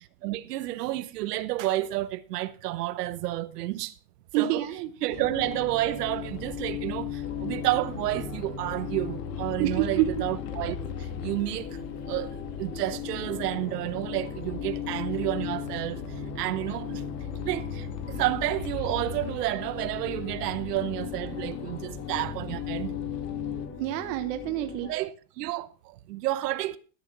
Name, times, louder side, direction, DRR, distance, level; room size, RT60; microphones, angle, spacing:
voice 1, 0.2-3.9 4.4-4.7 5.0-11.8 12.1-17.0 17.5-23.0 24.8-26.8, right 16 dB, 80° right, 1.0 m, -30 dB
voice 2, 4.3-4.9 9.6-10.1 23.8-24.9, right 14 dB, 55° right, 1.3 m, -27 dB
sound 1, 5.1-23.7, left 8 dB, 80° left, 2.5 m, -36 dB
sound 2, 7.2-25.0, left 4 dB, 25° left, 2.0 m, -42 dB
13.5 x 6.4 x 5.9 m
supercardioid pair, 140°, 47 cm